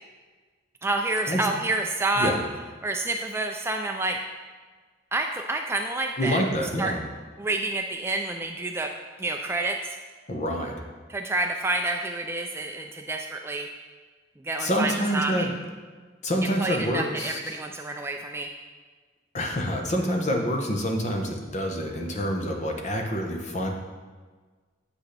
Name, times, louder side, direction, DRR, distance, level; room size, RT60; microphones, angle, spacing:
voice 1, 0.8-2.4 2.8-4.2 5.1-6.4 6.8-7.0 7.4-8.9 9.2-10.0 11.1-13.7 14.4-15.5 16.4-18.5, right 2 dB, 15° right, 3 dB, 0.3 m, -28 dB
voice 2, 6.2-7.0 10.3-10.7 14.6-15.5 16.2-17.6 19.3-23.7, equal, 40° left, 2 dB, 1.0 m, -27 dB
8.1 x 8.0 x 3.4 m, 1.4 s
head